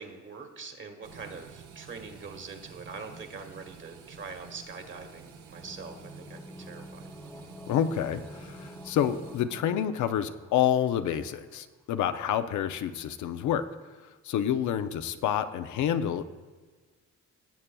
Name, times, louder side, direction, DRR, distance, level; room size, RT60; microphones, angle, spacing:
voice 1, 0.0-7.1, right 4 dB, 40° right, 5 dB, 1.4 m, -43 dB
sound 1, 1.0-9.5, right 6 dB, 75° right, 1.1 m, -50 dB
sound 2, 5.4-11.1 11.4-11.5, equal, 5° left, 0.9 m, -48 dB
voice 2, 7.7-13.6 14.2-16.2, left 9 dB, 75° left, 10 dB, 0.6 m, -28 dB
18.0 x 7.4 x 2.2 m, 1.4 s
cardioid pair, 90°, 30 cm